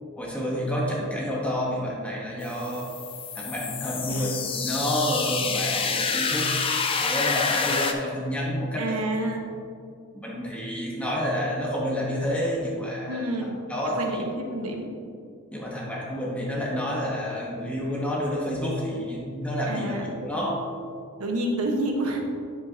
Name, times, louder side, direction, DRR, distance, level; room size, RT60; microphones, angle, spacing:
voice 1, 0.2-2.9 3.3-6.5 7.0-9.0 10.1-14.2 15.5-20.0 20.2-20.7, equal, 5° left, -4 dB, 1.0 m, -29 dB
sound 1, 2.4-7.9, left 5 dB, 25° left, 0.5 m, -27 dB
voice 2, 8.8-9.5 13.1-13.6 14.0-14.2 14.5-14.9 19.7-20.1 21.2-22.3, right 1 dB, 90° right, 1 dB, 1.3 m, -28 dB
10.5 x 7.4 x 2.8 m, 2.5 s
head